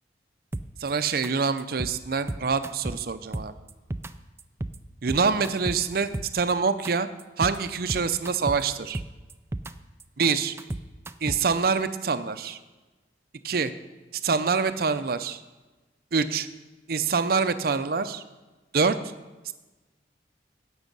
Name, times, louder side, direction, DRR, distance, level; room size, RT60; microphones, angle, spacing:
sound 1, 0.5-0.9 1.2-1.3 1.6-2.0 2.3-3.0 3.3-4.1 4.4-4.8 5.1-6.5 6.8-6.9 7.2-7.6 7.9-8.6 8.9-9.7 10.0-11.6, right 1 dB, 15° right, 0.3 m, -33 dB
voice 1, 0.8-3.5 5.0-7.1 7.4-9.0 10.2-10.5 11.2-12.6 13.4-13.7 14.2-15.4 16.1-16.5 16.9-18.2 18.7-19.0 19.4-19.5, right 5 dB, 55° right, 11 dB, 0.6 m, -25 dB
16.5 x 6.2 x 5.4 m, 1.2 s
head